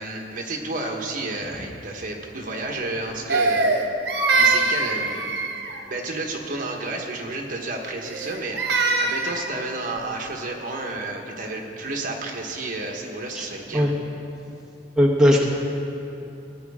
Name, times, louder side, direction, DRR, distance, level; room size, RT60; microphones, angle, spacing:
voice 1, 0.0-3.8 4.3-5.2 5.9-13.9, right 2 dB, 50° right, 1 dB, 1.3 m, -31 dB
Crying sobbing, 3.3-5.8 8.0-9.5, right 3 dB, 75° right, 1.2 m, -22 dB
voice 2, 15.0-15.5, equal, 5° right, -3 dB, 1.0 m, -18 dB
18.5 x 9.6 x 3.6 m, 2.8 s
head